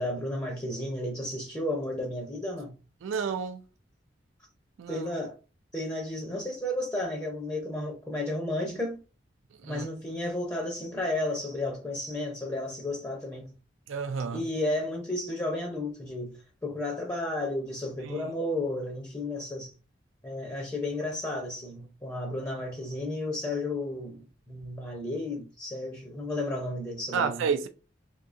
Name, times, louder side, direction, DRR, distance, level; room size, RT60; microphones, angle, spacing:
voice 1, 0.0-2.7 4.9-5.3 5.7-9.0 9.6-13.5 14.3-19.7 20.2-27.5, left 1 dB, 15° left, 0.6 m, -33 dB
voice 2, 3.0-3.6 4.8-5.1 9.7-9.9 13.9-14.4 18.1-18.2 27.1-27.7, right 6 dB, 90° right, 0.4 m, -30 dB
3.6 x 2.7 x 2.5 m
head